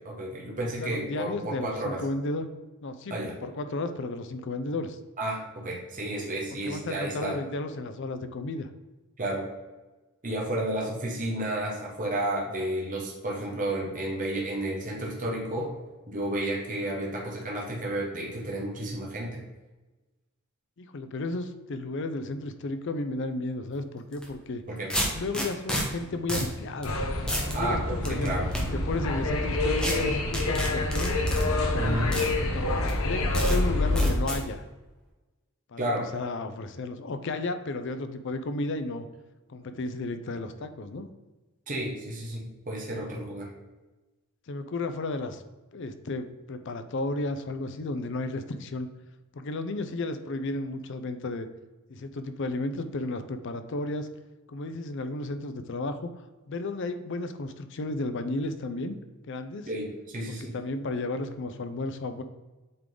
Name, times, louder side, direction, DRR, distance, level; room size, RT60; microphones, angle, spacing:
voice 1, 0.0-2.0 3.1-3.3 5.2-7.4 9.2-9.5 10.2-15.7 16.1-19.4 24.7-24.9 27.5-28.5 31.8-32.1 35.8-36.1 41.7-43.5 59.7-60.5, right 1 dB, 40° right, -3 dB, 1.1 m, -31 dB
voice 2, 0.8-2.5 2.8-5.0 6.6-8.7 20.8-24.6 25.2-27.0 27.5-28.3 28.7-31.1 31.6-32.7 33.0-34.6 35.7-39.1 39.5-41.1 44.5-45.4 45.7-48.9 49.3-51.5 51.9-54.1 54.5-56.1 56.5-59.0 59.2-59.7 60.3-62.2, left 2 dB, 60° left, 9 dB, 0.5 m, -33 dB
sound 1, 24.1-24.3 24.9-25.8 26.3-26.5 26.8-26.9 27.3-27.5 28.0-28.6 29.8-29.9 30.3-31.4 32.1-32.3 32.9-33.0 33.3-33.6 34.0-34.4, equal, 5° left, 1.1 m, -30 dB
sound 2, 26.8-34.1, left 2 dB, 75° left, 0.9 m, -27 dB
7.8 x 3.7 x 3.8 m, 1.2 s
head